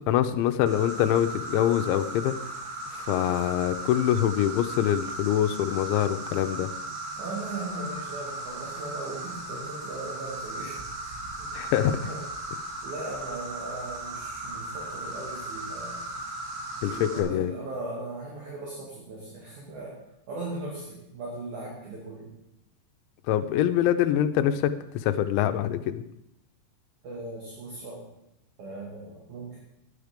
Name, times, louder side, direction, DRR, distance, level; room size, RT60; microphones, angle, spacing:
voice 1, 0.1-2.4 2.9-6.7 11.5-12.0 16.8-17.5 23.3-24.7 25.0-26.0, left 11 dB, 90° left, 8 dB, 3.0 m, -24 dB
Insect, 0.7-17.2, right 2 dB, 75° right, 4.0 m, -37 dB
voice 2, 7.2-11.5 11.8-12.2 12.8-16.0 16.9-20.0 20.3-22.3 27.0-28.0 28.6-29.6, right 2 dB, 50° right, -3 dB, 3.2 m, -38 dB
13.0 x 9.5 x 5.1 m, 0.82 s
omnidirectional pair, 5.1 m